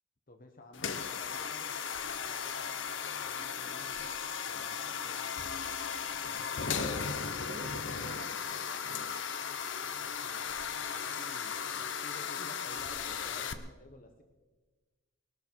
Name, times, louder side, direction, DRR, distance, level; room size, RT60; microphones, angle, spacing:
voice 1, 0.3-1.8 2.2-4.0 4.5-5.2 9.9-14.2, left 2 dB, 45° left, 4 dB, 1.1 m, -53 dB
sound 1, 0.7-13.5, left 6 dB, 70° left, 0.9 m, -36 dB
voice 2, 6.5-8.9, right 3 dB, 85° right, 11 dB, 1.1 m, -51 dB
21.0 x 13.0 x 4.6 m, 1.3 s
head